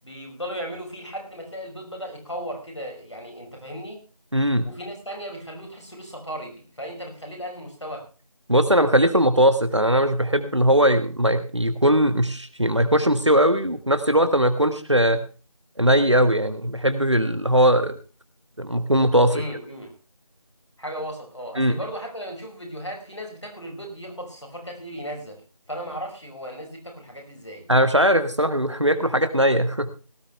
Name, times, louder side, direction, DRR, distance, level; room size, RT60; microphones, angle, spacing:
voice 1, 0.0-4.0 4.6-8.1 19.3-19.9 20.8-25.4 25.7-27.7, equal, 50° left, 1 dB, 5.4 m, -36 dB
voice 2, 4.3-4.7 8.5-15.2 15.8-17.9 18.6-19.4 21.6-21.8 27.7-29.9, equal, 50° right, 11 dB, 1.3 m, -20 dB
18.0 x 12.5 x 3.2 m, 0.34 s
figure-of-eight pair, 180°, 19 cm